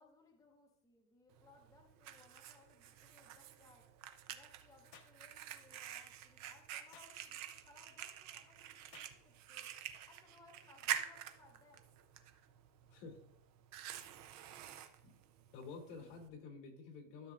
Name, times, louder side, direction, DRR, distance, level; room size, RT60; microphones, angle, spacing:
voice 1, 0.0-3.9 4.3-9.7 10.0-11.8, left 3 dB, 5° left, 1 dB, 0.9 m, -65 dB
Fire, 1.3-16.3, right 10 dB, 40° right, 0.7 m, -48 dB
sound 1, 4.9-5.2 6.9-7.2 8.9-9.2 10.9-11.2, left 7 dB, 45° left, 1.2 m, -59 dB
voice 2, 14.8-15.2 15.5-17.3, left 4 dB, 85° left, 2 dB, 2.9 m, -51 dB
13.0 x 6.4 x 2.5 m, 0.70 s
supercardioid pair, 155°, 46 cm